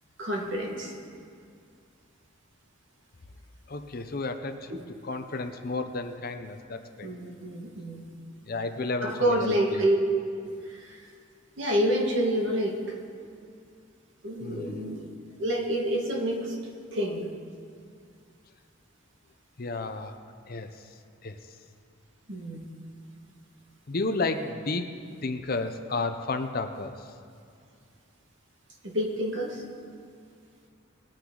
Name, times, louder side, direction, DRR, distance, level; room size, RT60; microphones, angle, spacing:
voice 1, 0.2-0.9 4.7-4.8 7.0-8.0 9.0-10.0 10.4-11.1 11.6-12.9 14.2-15.1 15.4-16.6 16.9-17.3 22.3-22.7 28.8-29.6, equal, 60° right, 0 dB, 1.7 m, -28 dB
voice 2, 3.7-4.7 5.0-7.1 8.5-9.8 14.4-14.9 19.6-20.2 20.5-20.7 21.2-21.3 23.9-24.9 25.2-26.9, left 3 dB, 45° left, 8 dB, 0.6 m, -32 dB
19.5 x 8.9 x 3.8 m, 2.4 s
head